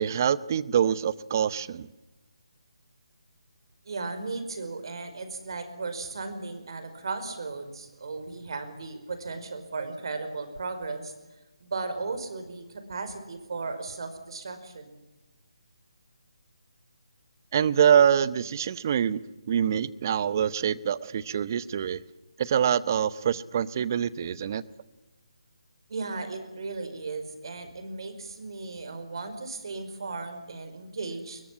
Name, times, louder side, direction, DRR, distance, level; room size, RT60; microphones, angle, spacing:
voice 1, 0.0-1.9 17.5-19.2 19.5-22.0 22.4-24.6, right 8 dB, 35° right, 18 dB, 0.9 m, -25 dB
voice 2, 3.9-11.1 11.6-15.0 25.9-31.4, right 3 dB, 55° right, 9 dB, 5.2 m, -36 dB
22.0 x 20.0 x 9.8 m, 1.1 s
figure-of-eight pair, 160°, 3 cm